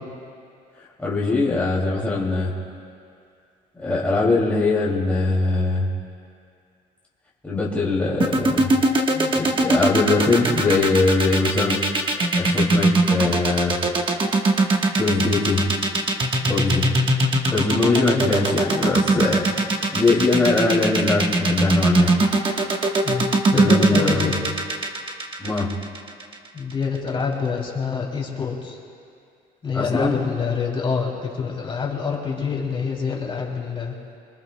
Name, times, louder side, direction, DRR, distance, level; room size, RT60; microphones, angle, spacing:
voice 1, 1.0-2.5 3.8-5.9 7.4-8.7 9.1-11.8 12.3-13.8 15.0-15.7 16.4-16.9 17.5-19.4 19.9-22.2 23.5-24.3 25.4-25.7 29.7-30.2, left 3 dB, 10° left, -6 dB, 2.5 m, -21 dB
sound 1, 8.2-26.3, right 2 dB, 30° right, 1.2 m, -20 dB
voice 2, 23.0-24.3 26.5-28.8 29.6-33.9, left 5 dB, 30° left, -2 dB, 2.8 m, -26 dB
26.0 x 20.5 x 2.2 m, 2.4 s
cardioid pair, 110°, 17 cm